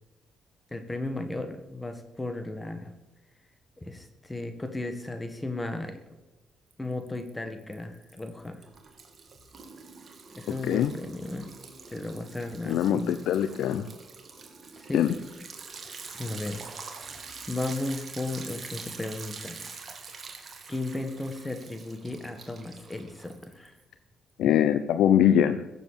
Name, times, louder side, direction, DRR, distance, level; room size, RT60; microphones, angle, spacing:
voice 1, 0.7-2.9 3.8-6.0 6.8-8.6 10.3-11.5 11.9-13.2 14.8-15.0 16.1-16.6 17.0-19.8 20.1-20.2 20.7-23.8, left 2 dB, 15° left, 8 dB, 1.8 m, -35 dB
Liquid, 6.7-7.3 7.6-23.8, right 4 dB, 40° right, 2.5 m, -45 dB
voice 2, 12.7-13.9 14.9-15.1 24.4-25.6, left 10 dB, 80° left, 11 dB, 0.7 m, -22 dB
15.5 x 7.6 x 7.6 m, 1.0 s
cardioid pair, 90°, 0 cm